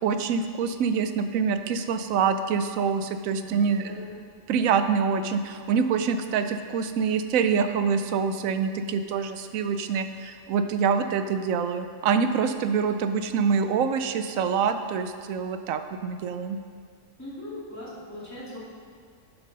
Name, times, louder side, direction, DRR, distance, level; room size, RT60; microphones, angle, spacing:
voice 1, 0.0-3.9 4.5-16.6, right 6 dB, 85° right, 9 dB, 1.0 m, -25 dB
voice 2, 3.4-4.2 12.6-13.1 17.2-18.6, left 1 dB, 10° left, -9 dB, 2.4 m, -40 dB
11.0 x 4.7 x 5.3 m, 2.1 s
omnidirectional pair, 1.4 m